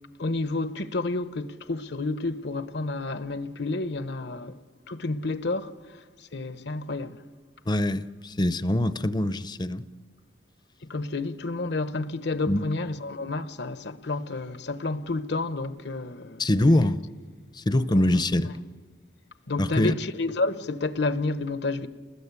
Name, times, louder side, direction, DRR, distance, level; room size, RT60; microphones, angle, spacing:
voice 1, 0.2-4.6 4.9-5.7 6.3-7.2 10.9-16.4 19.5-21.9, left 3 dB, 70° left, 1.0 m, -30 dB
voice 2, 7.7-9.8 12.5-12.6 16.4-17.0 17.5-18.5 19.6-19.9, left 1 dB, 25° left, 0.7 m, -23 dB
30.0 x 20.5 x 8.3 m
head